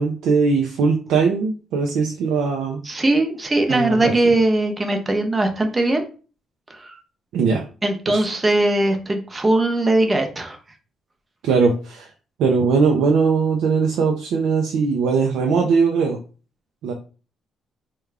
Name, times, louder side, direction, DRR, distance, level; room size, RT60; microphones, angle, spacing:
voice 1, 0.0-2.8 3.7-4.1 7.3-7.6 8.1-8.2 11.4-12.1 12.4-16.2 16.8-16.9, right 5 dB, 85° right, 1 dB, 0.5 m, -20 dB
voice 2, 2.8-6.0 6.7-7.0 7.8-10.6, right 2 dB, 25° right, 5 dB, 0.7 m, -20 dB
3.5 x 2.3 x 3.3 m, 0.37 s
cardioid pair, 90°, 0 cm